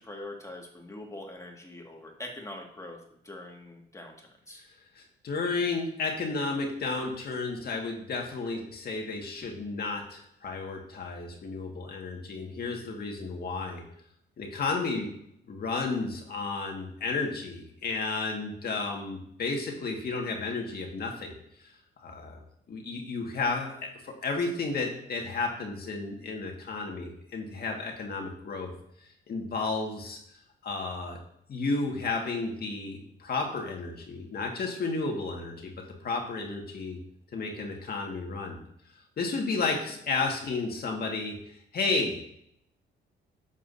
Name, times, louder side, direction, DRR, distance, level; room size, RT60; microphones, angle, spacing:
voice 1, 0.0-4.6, left 1 dB, 15° left, 1 dB, 2.0 m, -43 dB
voice 2, 5.0-13.8 14.4-15.1 15.5-21.3 21.6-21.7 22.0-22.4 22.7-28.7 29.3-30.2 30.6-31.2 31.5-35.7 36.0-37.0 37.3-38.6 39.2-41.4 41.7-42.2, left 3 dB, 50° left, 1 dB, 1.9 m, -32 dB
11.5 x 7.3 x 2.7 m, 0.72 s
cardioid pair, 90°, 20 cm